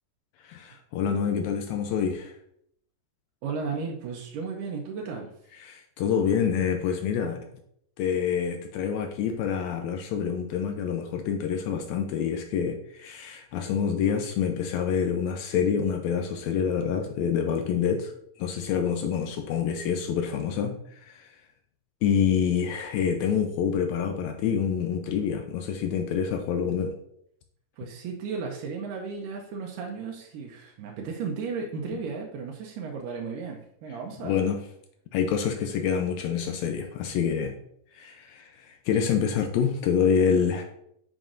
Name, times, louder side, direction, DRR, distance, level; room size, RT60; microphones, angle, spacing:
voice 1, 0.4-2.3 5.6-7.4 8.0-18.1 18.4-21.3 22.0-26.9 34.2-34.6 35.1-37.5 37.9-40.6, left 7 dB, 80° left, 5 dB, 1.6 m, -27 dB
voice 2, 3.4-5.3 27.8-34.5, right 5 dB, 85° right, 1 dB, 2.3 m, -34 dB
7.4 x 5.0 x 2.5 m, 0.70 s
omnidirectional pair, 3.7 m